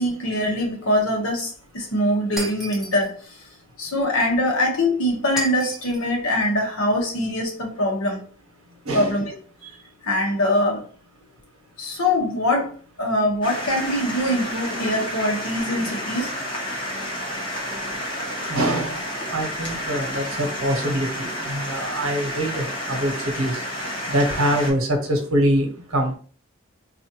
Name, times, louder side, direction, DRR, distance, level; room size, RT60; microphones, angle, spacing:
voice 1, 0.0-3.1 3.8-8.2 8.9-9.3 10.0-10.8 11.8-12.7 13.0-16.3, left 1 dB, 80° left, 1.1 m, -23 dB
Shatter, 2.4-3.1 5.4-6.1, right 1 dB, ahead, 0.7 m, -33 dB
sound 1, 13.4-24.7, equal, 25° left, 1.1 m, -30 dB
voice 2, 18.5-19.0 19.3-23.6 24.1-26.1, right 1 dB, 80° right, 1.0 m, -24 dB
4.0 x 2.5 x 2.9 m
head